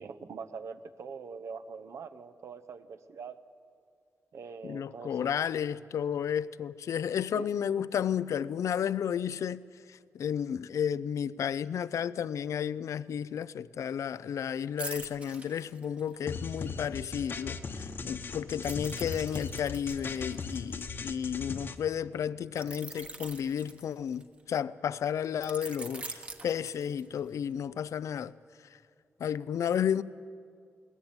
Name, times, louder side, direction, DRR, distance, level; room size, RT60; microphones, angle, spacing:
voice 1, 0.0-3.4 4.3-5.4 7.3-7.5, right 5 dB, 65° right, 0.9 m, -43 dB
voice 2, 4.6-9.6 9.9-28.3 29.2-30.0, left 8 dB, 75° left, 0.5 m, -32 dB
sound 1, 14.8-16.3 18.6-21.4 22.6-24.4 25.4-27.3 27.7-27.9, right 3 dB, 25° right, 1.3 m, -44 dB
sound 2, 16.3-21.8, left 5 dB, 45° left, 1.1 m, -38 dB
21.5 x 19.0 x 8.9 m
wide cardioid pair, 165°, 5 cm